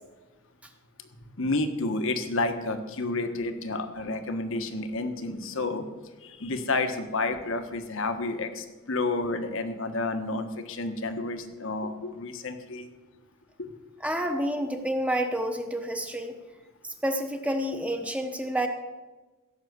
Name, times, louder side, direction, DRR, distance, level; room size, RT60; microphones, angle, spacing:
voice 1, 1.4-5.8 6.2-12.9 13.6-13.7, left 2 dB, 60° left, 8 dB, 1.3 m, -30 dB
voice 2, 14.0-16.3 17.0-18.7, right 1 dB, 5° right, 4 dB, 1.0 m, -29 dB
16.0 x 6.5 x 8.0 m, 1.2 s
head